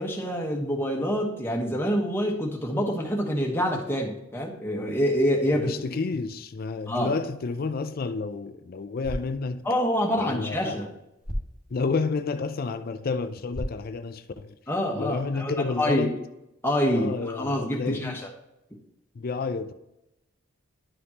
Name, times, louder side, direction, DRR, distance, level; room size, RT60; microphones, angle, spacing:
voice 1, 0.0-5.7 6.9-7.1 9.6-10.9 14.7-16.1 16.6-18.2, equal, 10° left, 1.2 m, -26 dB
voice 2, 5.6-9.6 10.2-10.8 11.7-14.6 14.9-16.1 16.9-18.2 19.2-19.7, left 4 dB, 50° left, 0.4 m, -30 dB
sound 1, 8.8-14.9, equal, 5° right, 1.4 m, -40 dB
11.0 x 5.1 x 2.9 m
head